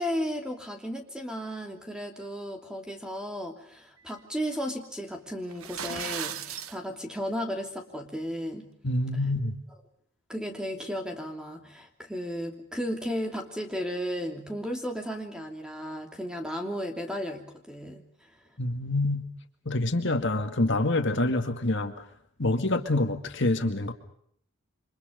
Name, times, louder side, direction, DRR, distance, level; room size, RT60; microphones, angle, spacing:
voice 1, 0.0-8.7 10.3-18.0, equal, 5° right, 3 dB, 2.9 m, -34 dB
sound 1, 5.5-6.8, right 8 dB, 70° right, 1.0 m, -35 dB
voice 2, 8.8-9.6 18.6-19.3 19.7-22.0 22.4-23.9, left 2 dB, 55° left, 6 dB, 2.1 m, -26 dB
29.0 x 25.5 x 5.3 m, 0.66 s
head